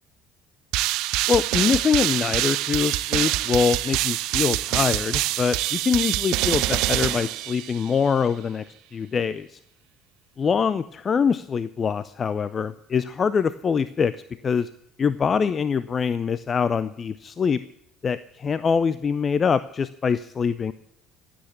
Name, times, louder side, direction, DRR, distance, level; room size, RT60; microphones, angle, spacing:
sound 1, 0.7-8.0, right 16 dB, 60° right, 0.6 m, -25 dB
voice 1, 1.3-8.6 8.9-9.6 10.4-14.2 14.4-14.7 15.0-17.6 18.0-20.7, left 6 dB, 35° left, 16 dB, 0.6 m, -24 dB
16.0 x 8.7 x 8.5 m, 0.74 s
figure-of-eight pair, 60°, 0 cm